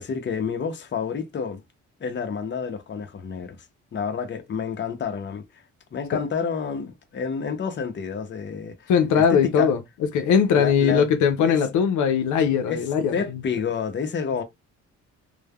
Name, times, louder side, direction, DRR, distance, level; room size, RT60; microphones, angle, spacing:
voice 1, 0.0-1.6 2.0-3.6 3.9-5.4 5.9-9.7 10.6-11.1 11.5-11.6 12.7-12.8 13.1-14.4, left 6 dB, 40° left, 0.7 m, -29 dB
voice 2, 8.9-9.8 10.1-13.1, left 7 dB, 75° left, 0.6 m, -20 dB
3.2 x 2.0 x 2.2 m
cardioid pair, 90°, 30 cm